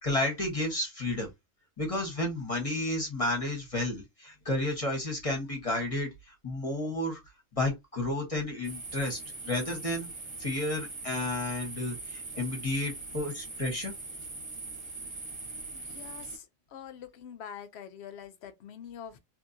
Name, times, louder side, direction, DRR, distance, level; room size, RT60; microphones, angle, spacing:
voice 1, 0.0-1.3 1.8-7.2 7.5-10.1 10.4-13.9, left 1 dB, 30° left, 1.0 m, -32 dB
sound 1, 8.6-16.4, right 3 dB, 30° right, 1.1 m, -41 dB
voice 2, 15.7-19.2, left 8 dB, 65° left, 0.8 m, -45 dB
3.0 x 2.6 x 2.6 m
omnidirectional pair, 1.4 m